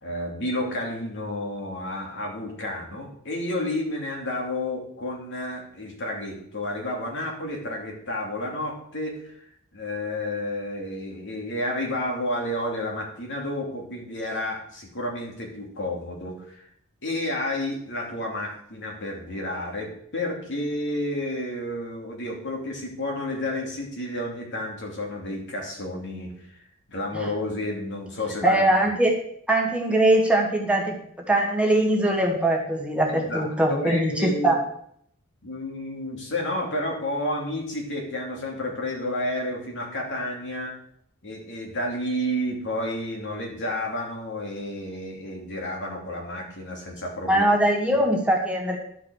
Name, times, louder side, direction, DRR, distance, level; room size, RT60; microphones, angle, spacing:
voice 1, 0.0-9.5 9.7-16.6 17.0-26.6 26.9-28.6 33.1-34.6 35.4-40.8 41.2-47.5, left 1 dB, 55° left, 0 dB, 2.8 m, -31 dB
voice 2, 28.4-29.1 29.5-30.9 31.3-34.1 34.4-34.6 47.3-48.8, right 1 dB, 5° right, -1 dB, 1.6 m, -21 dB
11.5 x 6.1 x 6.4 m, 0.68 s
head